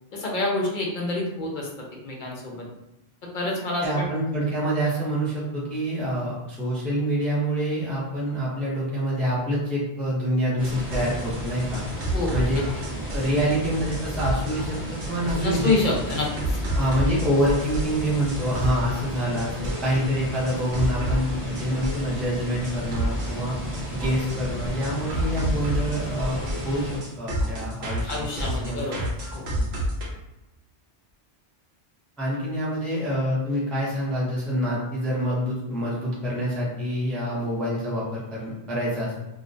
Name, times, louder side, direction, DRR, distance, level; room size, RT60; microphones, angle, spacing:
voice 1, 0.1-1.7 2.0-2.7 3.3-4.1 12.1-12.5 15.4-16.5 28.1-29.5, left 2 dB, 60° left, -2 dB, 0.6 m, -27 dB
voice 2, 3.8-11.8 12.3-12.6 13.1-15.7 16.7-23.6 23.9-28.8 32.2-39.2, equal, ahead, -7 dB, 0.4 m, -26 dB
sound 1, 10.5-20.0 20.5-22.2 22.6-24.4 24.8-30.0, right 1 dB, 85° right, 0.9 m, -30 dB
sound 2, 10.6-27.0, right 1 dB, 25° right, 0.8 m, -34 dB
2.4 x 2.1 x 2.5 m, 0.96 s
omnidirectional pair, 1.0 m